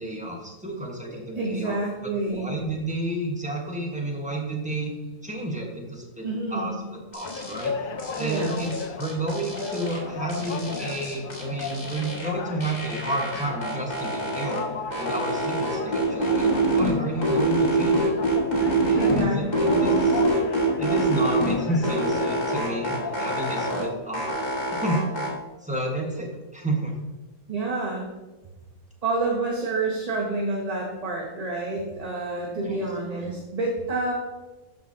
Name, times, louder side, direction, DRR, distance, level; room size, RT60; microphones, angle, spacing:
voice 1, 0.0-4.9 5.2-6.3 6.5-8.7 9.0-14.6 15.0-18.1 18.8-19.4 19.7-20.2 20.8-25.0 25.6-26.9 32.5-33.3, right 1 dB, 5° right, -1 dB, 1.3 m, -31 dB
voice 2, 1.1-2.5 6.2-6.8 8.2-8.6 19.0-19.9 27.5-28.1 29.0-34.1, right 2 dB, 30° right, -2 dB, 1.0 m, -28 dB
sound 1, 7.1-7.7 8.0-10.0 10.3-12.3 12.6-14.6 14.9-16.9 17.2-19.2 19.5-21.5 21.8-23.8 24.1-25.3, right 2 dB, 30° left, 1.7 m, -25 dB
sound 2, 7.2-23.9, left 5 dB, 55° left, 0.6 m, -35 dB
12.5 x 5.0 x 2.9 m, 1.1 s
omnidirectional pair, 1.4 m